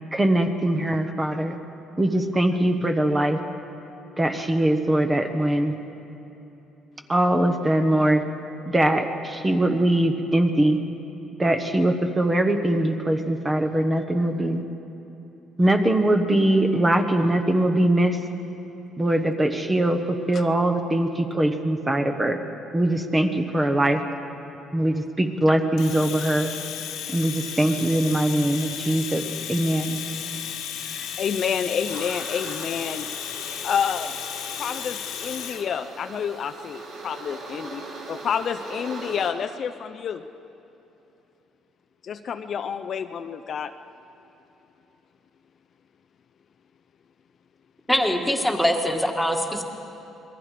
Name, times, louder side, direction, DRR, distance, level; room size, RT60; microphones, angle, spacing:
voice 1, 0.1-1.6 2.0-3.4 4.2-5.7 7.1-8.2 8.7-10.8 11.4-14.6 15.6-18.2 19.0-22.4 22.7-24.0 24.7-26.5 27.1-30.0, right 1 dB, 15° right, 6 dB, 1.2 m, -22 dB
Domestic sounds home sounds, 25.8-35.7, left 9 dB, 90° left, 1.7 m, -34 dB
voice 2, 30.8-33.1 33.6-34.2 34.6-37.8 38.1-40.2 42.0-43.7, left 7 dB, 45° left, 8 dB, 0.6 m, -29 dB
sound 1, 31.9-39.3, right 3 dB, 70° right, 5.1 m, -40 dB
voice 3, 47.9-49.6, left 1 dB, ahead, 2 dB, 1.8 m, -23 dB
27.0 x 21.5 x 5.1 m, 3.0 s
cardioid pair, 130°, 0 cm